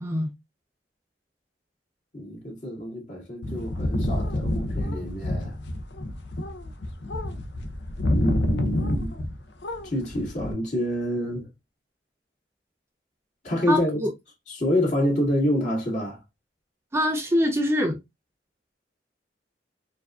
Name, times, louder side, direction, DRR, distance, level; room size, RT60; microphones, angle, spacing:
voice 1, 0.0-0.3 13.7-14.1 16.9-18.0, left 1 dB, 15° right, 0.4 m, -24 dB
voice 2, 2.1-5.6 8.1-9.1 9.8-11.5 13.4-14.0 14.5-16.2, equal, 45° left, 1.9 m, -27 dB
sound 1, 3.4-9.4 9.6-10.5, left 1 dB, 75° left, 0.6 m, -28 dB
4.5 x 2.6 x 2.3 m
head